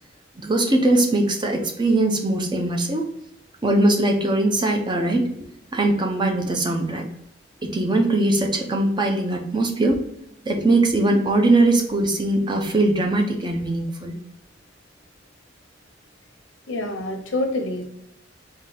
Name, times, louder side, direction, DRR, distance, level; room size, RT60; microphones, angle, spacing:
voice 1, 0.4-3.1 3.6-7.0 7.6-10.0 10.4-14.1, right 2 dB, 25° right, 2 dB, 0.6 m, -21 dB
voice 2, 16.7-17.8, left 2 dB, 80° left, 4 dB, 0.8 m, -26 dB
3.6 x 2.7 x 3.8 m, 0.77 s
head